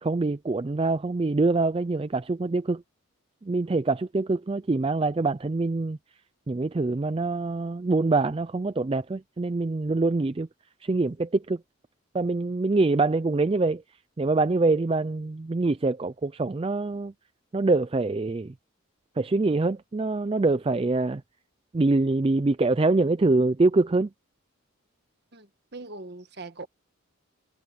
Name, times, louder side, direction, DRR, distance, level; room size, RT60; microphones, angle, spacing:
voice 1, 0.0-2.8 3.4-6.0 6.5-10.5 10.8-11.6 12.1-13.8 14.2-17.1 17.5-18.5 19.2-21.2 21.7-24.1, right 3 dB, 25° right, 0.3 m, -24 dB
voice 2, 25.3-26.7, right 3 dB, 50° right, 1.7 m, -41 dB
head